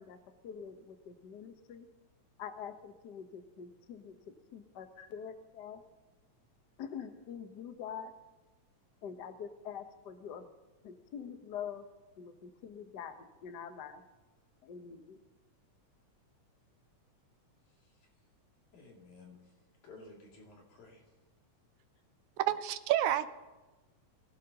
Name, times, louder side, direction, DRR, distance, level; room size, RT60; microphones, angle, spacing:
voice 1, 0.0-1.9 2.4-4.2 4.5-5.8 6.8-8.1 9.0-10.5 10.8-11.9 12.2-14.0 14.6-15.2, left 7 dB, 65° left, 7 dB, 1.0 m, -45 dB
voice 2, 18.7-19.6 19.8-21.0, left 3 dB, 80° left, -2 dB, 4.1 m, -54 dB
voice 3, 22.4-23.3, right 12 dB, 85° right, 12 dB, 2.1 m, -29 dB
24.0 x 16.0 x 2.9 m, 1.2 s
omnidirectional pair, 3.3 m